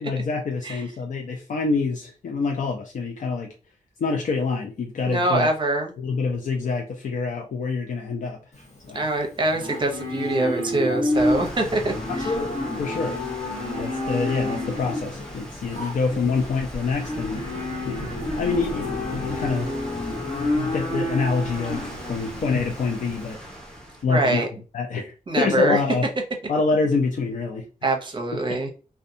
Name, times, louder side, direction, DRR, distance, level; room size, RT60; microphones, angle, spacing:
voice 1, 0.0-3.5 4.0-5.5 6.0-8.4 8.9-9.0 12.2-13.2 13.8-17.5 17.9-18.1 18.4-19.7 20.3-23.4 24.0-24.5 24.7-26.0 26.5-27.6 28.5-28.6, left 4 dB, 70° left, 1 dB, 0.4 m, -26 dB
voice 2, 5.1-5.9 8.9-12.3 24.1-24.5 25.3-25.8 27.8-28.7, right 2 dB, 35° right, 3 dB, 0.6 m, -24 dB
Livestock farm animals working animals, 8.5-23.3, left 1 dB, 55° left, 0.9 m, -29 dB
sound 1, 11.1-24.0, equal, 5° left, 0.6 m, -38 dB
2.6 x 2.2 x 2.6 m, 0.35 s
wide cardioid pair, 150°, 14 cm